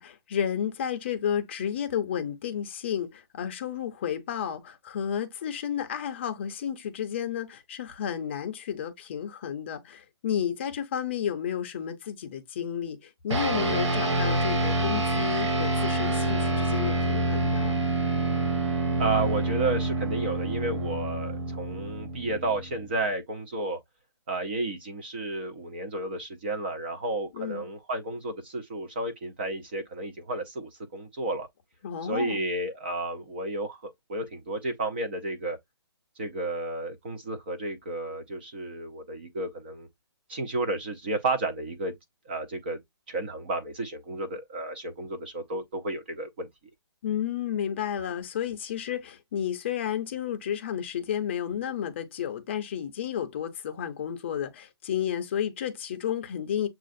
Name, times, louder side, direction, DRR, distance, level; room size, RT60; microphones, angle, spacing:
voice 1, 0.0-13.0 13.2-17.7 27.4-27.6 31.8-32.4 47.0-56.7, left 9 dB, 25° left, 0.5 m, -32 dB
sound 1, 13.3-22.9, right 2 dB, 80° right, 1.7 m, -27 dB
voice 2, 19.0-23.8 24.3-31.5 32.0-35.6 36.2-39.9 40.3-41.9 42.3-42.8 43.1-46.5, right 2 dB, 20° right, 0.4 m, -32 dB
7.2 x 2.4 x 2.5 m
hypercardioid pair, 165°, 15 cm